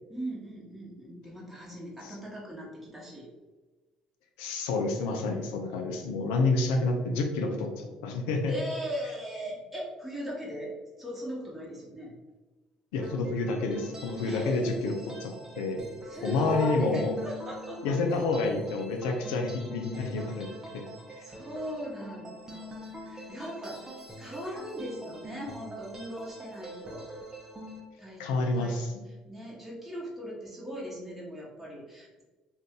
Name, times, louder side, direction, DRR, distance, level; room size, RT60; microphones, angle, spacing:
voice 1, 0.1-3.3 6.6-6.8 8.4-12.1 14.2-14.7 16.1-18.0 21.2-23.8 24.2-27.1 28.0-28.8 29.1-32.2, equal, 5° right, -5 dB, 1.1 m, -38 dB
voice 2, 4.4-8.5 12.9-15.8 16.2-17.1 17.8-20.5 20.7-20.8 28.2-29.0, left 3 dB, 80° left, 3 dB, 0.5 m, -29 dB
sound 1, 13.0-27.8, equal, 20° right, 0.7 m, -44 dB
2.6 x 2.5 x 3.5 m, 1.2 s
hypercardioid pair, 60°, 3 cm